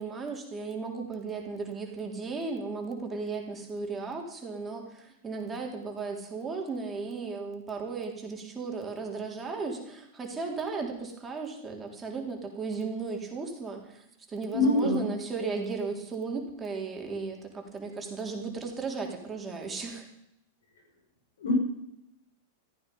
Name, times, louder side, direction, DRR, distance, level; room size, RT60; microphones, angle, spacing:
voice 1, 0.0-20.1, right 4 dB, 20° right, 1 dB, 3.6 m, -35 dB
voice 2, 14.5-15.0 21.4-21.5, left 2 dB, 75° left, 2 dB, 6.5 m, -24 dB
14.5 x 14.5 x 5.5 m, 0.80 s
hypercardioid pair, 105°, 0 cm